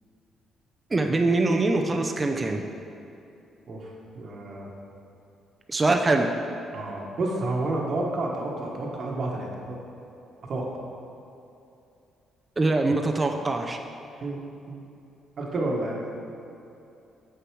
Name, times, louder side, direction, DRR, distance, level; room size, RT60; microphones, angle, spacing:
voice 1, 0.9-2.7 5.7-6.3 12.6-13.8, right 2 dB, 25° right, 4 dB, 0.5 m, -23 dB
voice 2, 3.7-4.7 6.7-9.8 10.5-10.7 14.2-14.4 14.7-14.8 15.4-16.0, right 2 dB, 55° right, -1 dB, 1.3 m, -30 dB
7.7 x 6.7 x 4.7 m, 2.7 s
cardioid pair, 90°, 0 cm